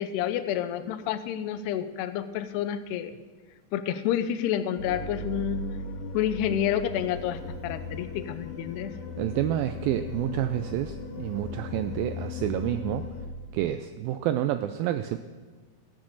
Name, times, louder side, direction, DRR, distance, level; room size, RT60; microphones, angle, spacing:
voice 1, 0.0-3.1 3.7-5.7 6.1-8.9, left 10 dB, 90° left, 11 dB, 2.8 m, -29 dB
sound 1, 4.8-13.2, left 2 dB, 60° left, 2.1 m, -37 dB
voice 2, 9.2-13.0 13.5-15.2, right 12 dB, 85° right, 10 dB, 2.0 m, -29 dB
16.0 x 8.5 x 6.4 m, 1.4 s
omnidirectional pair, 4.6 m